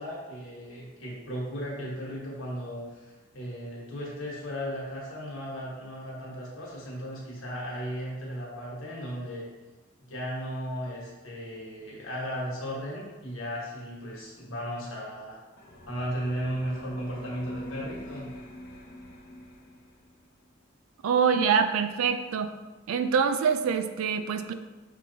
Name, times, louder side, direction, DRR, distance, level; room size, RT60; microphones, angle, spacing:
voice 1, 0.0-9.4 10.0-15.4 15.9-18.3, equal, 65° left, -4 dB, 1.4 m, -36 dB
sound 1, 15.6-20.2, left 1 dB, 45° left, 0.8 m, -43 dB
voice 2, 21.0-22.5 22.9-24.5, right 6 dB, 80° right, 9 dB, 0.3 m, -25 dB
6.0 x 2.9 x 2.8 m, 1.2 s
head